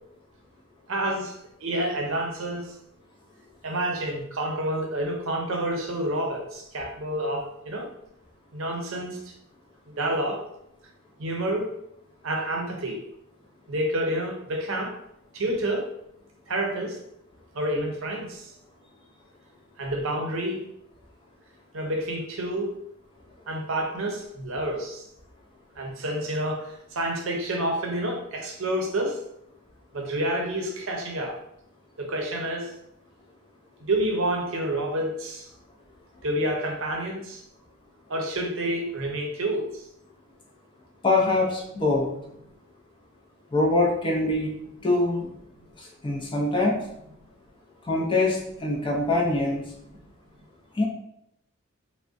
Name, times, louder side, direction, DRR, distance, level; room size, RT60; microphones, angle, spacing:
voice 1, 0.9-2.7 3.6-7.9 8.5-9.3 9.9-10.5 11.2-11.7 12.2-13.0 13.7-15.0 15.3-15.9 16.5-17.0 17.5-18.5 19.8-20.6 21.7-22.7 23.5-25.0 25.8-29.2 29.9-31.4 32.0-32.7 33.8-35.5 36.2-37.4 38.1-39.8, right 1 dB, 65° right, 1 dB, 0.6 m, -29 dB
voice 2, 41.0-42.1 43.5-44.5 44.8-45.3 45.8-46.8 47.8-49.6 50.7-50.9, left 2 dB, 20° left, -1 dB, 0.4 m, -24 dB
3.5 x 2.1 x 2.5 m, 0.77 s
head